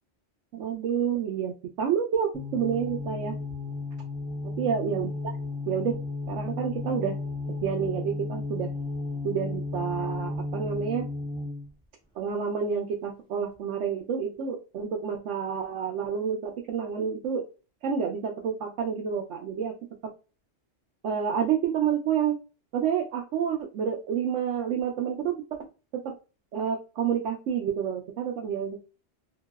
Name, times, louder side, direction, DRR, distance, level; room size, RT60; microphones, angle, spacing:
voice 1, 0.5-1.5 1.8-3.4 4.6-5.1 5.7-6.0 6.3-7.2 7.6-8.7 9.2-11.1 12.2-17.4 17.8-19.7 21.0-22.4 22.7-25.6 25.9-26.1 26.5-28.8, right 7 dB, 80° right, 1 dB, 0.9 m, -29 dB
sound 1, 2.3-11.7, left 3 dB, 5° left, 0.4 m, -34 dB
3.0 x 2.7 x 2.2 m, 0.33 s
omnidirectional pair, 1.2 m